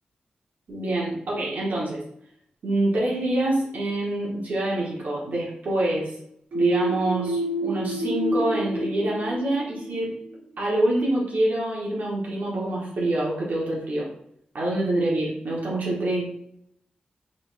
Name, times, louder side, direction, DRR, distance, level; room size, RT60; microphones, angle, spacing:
voice 1, 0.7-2.0 2.6-6.1 6.5-10.1 10.6-14.1 14.5-16.3, right 1 dB, 70° right, -5 dB, 1.4 m, -26 dB
sound 1, 6.5-10.2, right 1 dB, 90° right, 1.2 m, -29 dB
4.1 x 3.9 x 2.7 m, 0.71 s
wide cardioid pair, 120°, 3 cm